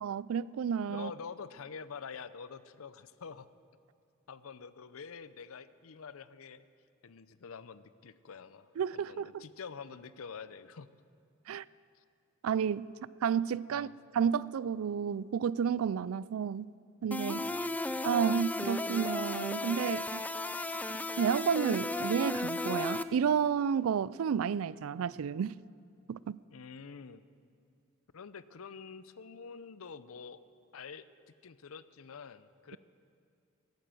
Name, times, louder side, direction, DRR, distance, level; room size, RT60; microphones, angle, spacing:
voice 1, 0.0-1.1 8.8-9.4 11.5-11.6 12.4-12.9 13.2-16.7 17.0-17.5 18.0-20.2 20.9-25.5 26.1-26.4, right 7 dB, 80° right, 0.3 m, -31 dB
voice 2, 0.9-3.5 4.3-6.6 7.0-10.9 11.9-12.0 13.7-13.9 17.4-17.8 26.5-27.3 28.1-30.4 30.7-31.1 31.4-32.8, left 5 dB, 85° left, 0.6 m, -47 dB
sound 1, 17.1-23.0, left 2 dB, 5° left, 0.4 m, -35 dB
19.5 x 9.2 x 7.7 m
head